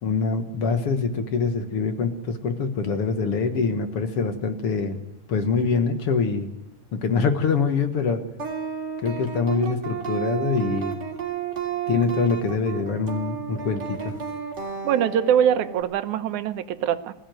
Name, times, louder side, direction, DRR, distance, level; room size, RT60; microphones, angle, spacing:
voice 1, 0.0-5.0 5.3-6.5 6.9-8.2 9.0-10.9 11.9-14.2, left 5 dB, 55° left, 8 dB, 2.2 m, -24 dB
sound 1, 8.4-15.8, right 7 dB, 35° right, 3.5 m, -32 dB
voice 2, 14.8-17.1, right 9 dB, 85° right, 11 dB, 2.4 m, -23 dB
21.0 x 15.5 x 9.3 m, 0.94 s
omnidirectional pair, 3.3 m